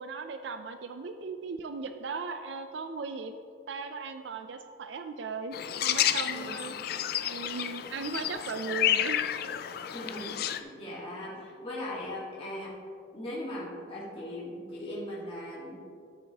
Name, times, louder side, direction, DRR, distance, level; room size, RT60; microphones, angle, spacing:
voice 1, 0.0-3.4 3.7-6.7 7.2-9.2, right 4 dB, 70° right, 8 dB, 0.4 m, -37 dB
sound 1, 5.5-10.6, left 11 dB, 55° left, 0.4 m, -30 dB
voice 2, 6.2-6.6 9.9-12.7 13.1-15.8, left 1 dB, 30° left, -7 dB, 1.9 m, -39 dB
13.0 x 8.0 x 2.9 m, 2.4 s
head